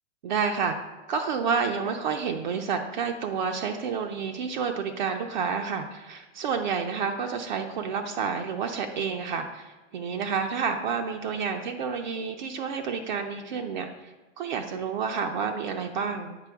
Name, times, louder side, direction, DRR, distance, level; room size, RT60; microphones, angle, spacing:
voice 1, 0.2-0.7 1.1-16.4, right 6 dB, 40° right, 3 dB, 0.4 m, -29 dB
8.3 x 5.2 x 3.5 m, 1.2 s
hypercardioid pair, 155°, 37 cm